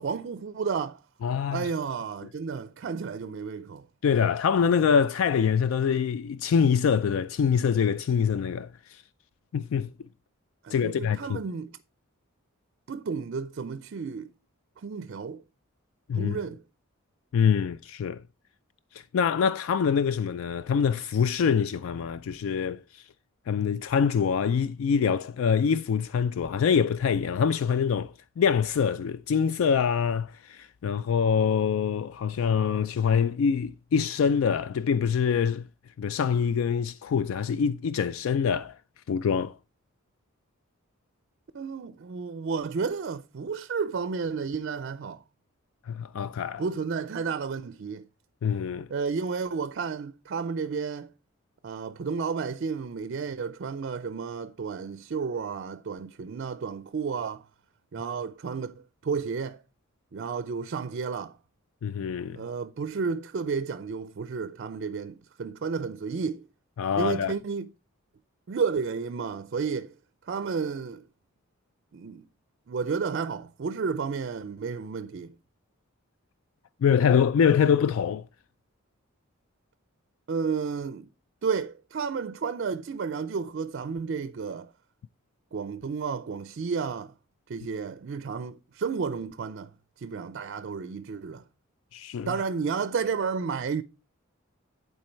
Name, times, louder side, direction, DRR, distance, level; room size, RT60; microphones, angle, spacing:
voice 1, 0.0-1.0 1.5-3.9 10.6-11.8 12.9-14.3 14.8-15.4 16.1-16.6 41.5-45.2 46.6-48.1 48.9-51.1 51.6-57.5 57.9-59.6 60.1-61.4 62.3-66.5 67.0-67.7 68.5-69.9 70.3-71.0 71.9-72.3 72.7-75.4 80.3-81.1 81.4-84.7 85.5-87.1 87.5-89.7 90.0-91.4 92.3-93.8, right 5 dB, 55° right, 0.4 m, -32 dB
voice 2, 1.2-1.7 4.0-9.0 9.5-9.9 10.7-11.4 16.1-16.4 17.3-18.2 18.9-23.0 23.5-35.7 36.0-38.8 39.1-39.5 45.9-46.6 48.4-48.9 61.8-62.4 66.8-67.3 76.8-78.3 91.9-92.3, left 7 dB, 70° left, 0.3 m, -25 dB
10.5 x 4.5 x 4.4 m
head